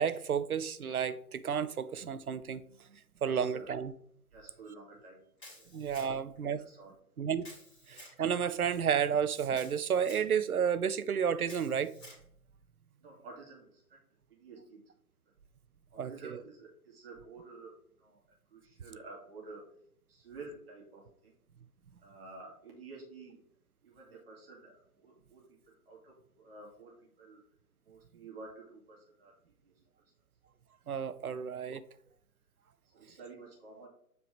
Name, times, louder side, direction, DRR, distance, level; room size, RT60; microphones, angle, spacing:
voice 1, 0.0-2.6 3.2-3.9 5.7-6.6 7.2-7.5 7.9-11.9 16.0-16.4 30.9-31.8, right 7 dB, 65° right, 0.6 m, -31 dB
voice 2, 3.2-3.8 4.3-5.2 5.6-5.7 6.0-6.2 6.6-6.9 13.0-14.0 14.3-14.8 15.9-19.6 20.1-21.3 22.0-23.4 23.8-27.4 27.8-29.4 29.6-29.7 32.9-33.9, right 3 dB, 40° right, 2.8 m, -51 dB
Camera, 5.4-6.4 7.4-8.2 9.5-10.3 11.4-12.2, left 1 dB, 20° left, 2.2 m, -52 dB
7.9 x 4.5 x 3.5 m
figure-of-eight pair, 140°, 47 cm